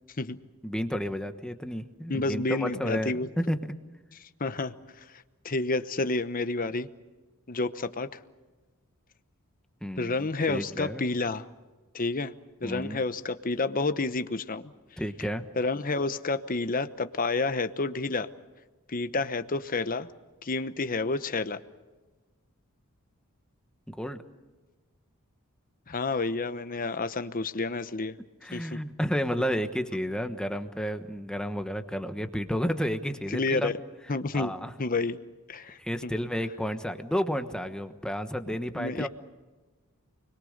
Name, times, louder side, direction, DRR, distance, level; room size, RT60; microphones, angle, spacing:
voice 1, 0.6-3.6 9.8-11.0 12.6-13.0 15.0-15.5 23.9-24.2 28.4-33.7 34.3-34.7 35.8-39.1, equal, 5° left, 8 dB, 1.2 m, -31 dB
voice 2, 2.1-3.3 4.2-5.0 5.4-6.9 7.5-8.2 10.0-11.5 11.9-12.3 12.6-14.6 15.6-18.3 18.9-20.1 20.4-21.6 25.9-28.1 28.5-28.8 33.3-33.7 34.1-34.5 34.8-35.2 35.5-36.1 38.7-39.1, left 3 dB, 40° left, 11 dB, 1.0 m, -29 dB
29.5 x 22.0 x 6.6 m, 1.2 s
head